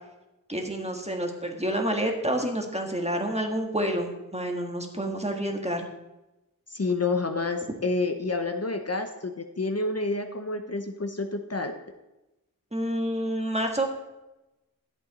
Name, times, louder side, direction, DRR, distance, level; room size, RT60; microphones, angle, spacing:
voice 1, 0.5-5.9 12.7-13.9, right 1 dB, 20° right, 2 dB, 1.6 m, -28 dB
voice 2, 6.7-11.7, left 3 dB, 45° left, 6 dB, 0.8 m, -29 dB
11.0 x 7.8 x 4.1 m, 1.0 s
wide cardioid pair, 40°, 35 cm